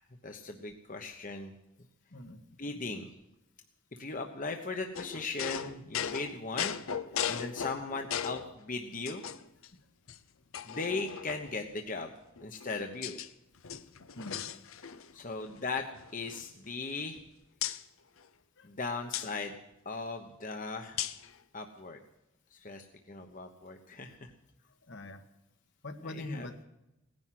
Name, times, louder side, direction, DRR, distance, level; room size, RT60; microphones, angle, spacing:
voice 1, 0.0-1.5 2.6-3.1 3.9-6.8 7.3-9.2 10.6-12.1 12.4-13.2 15.1-15.9 16.1-17.2 18.6-19.6 19.8-21.0 21.5-22.0 22.5-24.3 26.0-26.5, left 3 dB, 40° left, 4 dB, 1.1 m, -38 dB
sound 1, 4.9-8.5 9.1-9.7 10.1-10.2 10.5-11.6 12.4-13.3 13.6-15.1 15.4-15.6 15.9-17.2 17.6-17.8 19.1-19.3 21.0-21.3, left 8 dB, 85° left, 0.8 m, -37 dB
voice 2, 14.1-14.5 15.1-15.2 18.6-18.7 24.9-25.2 25.8-26.6, left 2 dB, 60° left, 7 dB, 1.4 m, -42 dB
18.0 x 10.5 x 7.6 m, 0.90 s
head